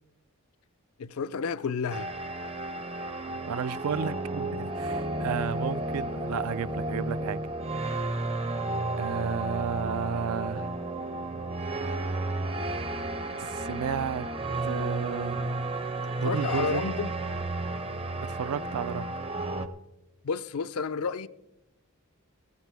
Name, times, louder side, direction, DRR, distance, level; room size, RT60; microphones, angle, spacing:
voice 1, 1.0-2.1 16.2-17.1 20.2-21.3, left 5 dB, 70° left, 0.5 m, -31 dB
sound 1, 1.9-19.7, right 2 dB, 25° right, 0.6 m, -32 dB
voice 2, 3.3-7.4 9.0-10.8 13.4-14.3 14.6-15.6 16.2-16.8 18.3-19.1, right 7 dB, 70° right, 0.4 m, -33 dB
15.0 x 14.5 x 3.4 m
head